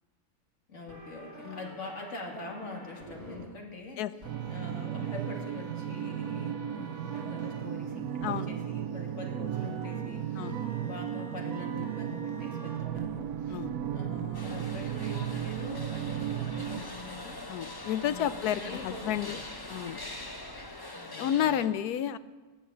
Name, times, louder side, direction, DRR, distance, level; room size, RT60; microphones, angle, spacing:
voice 1, 0.7-4.1 4.5-13.6 13.9-17.4 18.0-19.4 20.9-21.6, left 2 dB, 50° left, 0 dB, 2.7 m, -44 dB
sound 1, 0.9-3.4 4.2-7.6 8.2-8.3 9.4-20.7, right 2 dB, 55° right, 3.6 m, -48 dB
sound 2, 4.2-16.8, right 10 dB, 80° right, 1.3 m, -35 dB
sound 3, 14.3-21.7, left 2 dB, 20° left, 0.9 m, -43 dB
voice 2, 17.5-19.4 19.7-20.0 21.2-22.2, left 10 dB, 85° left, 14 dB, 1.2 m, -31 dB
20.5 x 7.5 x 8.4 m, 1.3 s
omnidirectional pair, 1.6 m